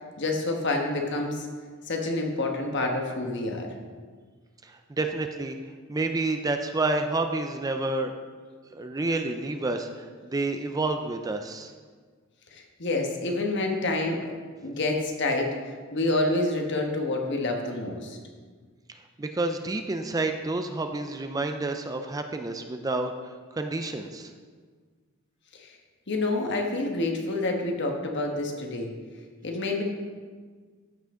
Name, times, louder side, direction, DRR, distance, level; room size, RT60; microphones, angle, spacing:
voice 1, 0.2-1.5 1.9-3.7 12.5-14.3 14.6-15.6 15.9-18.2 25.5-25.7 26.1-28.9 29.4-29.8, left 2 dB, 60° left, 2 dB, 1.3 m, -28 dB
voice 2, 4.6-5.6 5.9-8.1 8.7-10.0 10.3-11.7 19.2-23.1 23.6-24.3, right 2 dB, 15° right, 6 dB, 0.4 m, -29 dB
13.5 x 5.9 x 3.7 m, 1.6 s
head